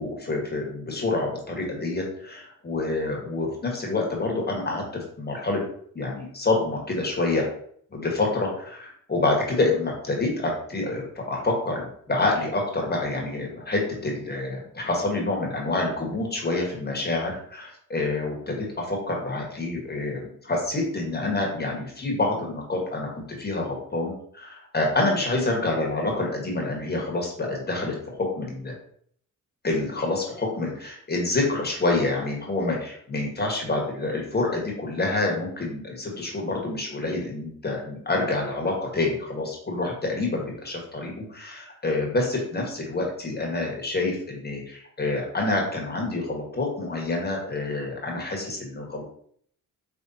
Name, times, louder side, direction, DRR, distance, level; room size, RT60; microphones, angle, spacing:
voice 1, 0.0-5.6 5.9-7.5 7.9-28.7 29.6-49.0, left 2 dB, 30° left, -1 dB, 1.4 m, -27 dB
5.1 x 3.2 x 2.8 m, 0.63 s
cardioid pair, 95°, 33 cm